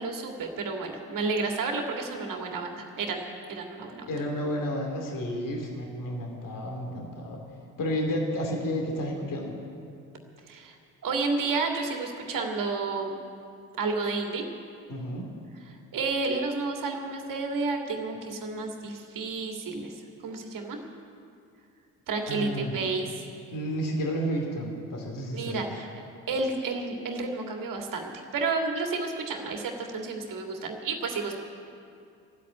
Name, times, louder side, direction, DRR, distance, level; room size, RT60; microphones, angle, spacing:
voice 1, 0.0-4.1 10.5-10.7 11.0-13.2 13.8-14.4 15.9-19.9 20.2-20.8 22.1-23.3 25.3-25.9 26.3-31.3, right 3 dB, 45° right, 2 dB, 2.2 m, -31 dB
voice 2, 4.1-7.4 7.8-9.5 14.9-15.3 22.3-22.8 23.5-25.6, equal, 45° left, 1 dB, 2.7 m, -31 dB
15.0 x 8.4 x 9.6 m, 2.4 s
figure-of-eight pair, 45°, 45 cm